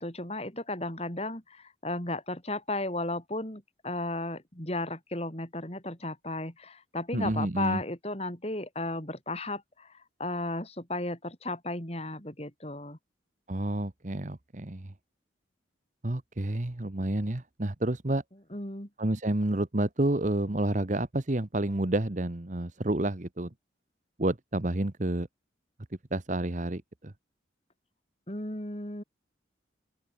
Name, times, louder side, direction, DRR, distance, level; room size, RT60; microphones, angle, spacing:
voice 1, 0.0-13.0 18.5-18.9 28.3-29.0, left 2 dB, 30° left, 4.4 m, -35 dB
voice 2, 7.1-7.8 13.5-14.9 16.0-18.2 19.0-23.5 24.2-25.3 26.1-27.1, right 1 dB, 40° right, 1.1 m, -29 dB
open air
head